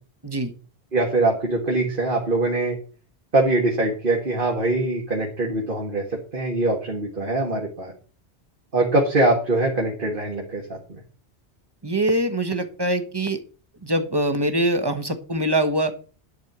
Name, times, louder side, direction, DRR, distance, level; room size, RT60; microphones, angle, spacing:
voice 1, 0.9-2.8 3.3-6.0 6.3-7.9 8.7-10.8, right 2 dB, 50° right, -1 dB, 1.9 m, -22 dB
voice 2, 11.8-13.4 13.8-15.9, right 1 dB, 25° right, 9 dB, 1.2 m, -23 dB
11.0 x 4.5 x 8.0 m, 0.39 s
omnidirectional pair, 1.1 m